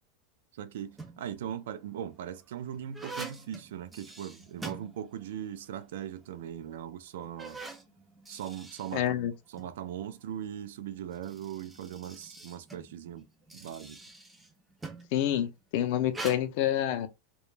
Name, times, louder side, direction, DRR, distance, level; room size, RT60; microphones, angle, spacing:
voice 1, 0.5-7.6 8.3-13.3 13.5-14.0, right 10 dB, 80° right, 0.3 m, -40 dB
sound 1, 0.7-1.4 2.1-5.5 5.8-5.9 6.6-6.7 7.2-9.7 10.9-15.2 16.1-16.4, right 3 dB, 10° right, 0.4 m, -45 dB
voice 2, 8.9-9.3 15.1-17.1, left 11 dB, 55° left, 0.4 m, -28 dB
2.2 x 2.0 x 3.1 m
supercardioid pair, 160°, 0 cm